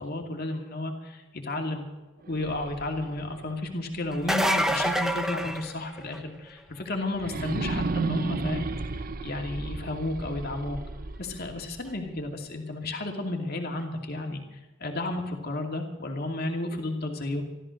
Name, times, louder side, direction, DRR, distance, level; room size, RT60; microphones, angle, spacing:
voice 1, 0.0-1.8 2.2-8.7 8.9-10.8 11.2-17.4, left 2 dB, 45° left, 3 dB, 2.5 m, -32 dB
sound 1, 2.2-5.2 5.6-5.7 7.1-12.2, right 3 dB, 40° right, 0.6 m, -34 dB
sound 2, 4.1-6.3 11.9-12.0 13.8-13.9, equal, ahead, 0.7 m, -27 dB
14.5 x 13.5 x 6.5 m, 1.1 s
head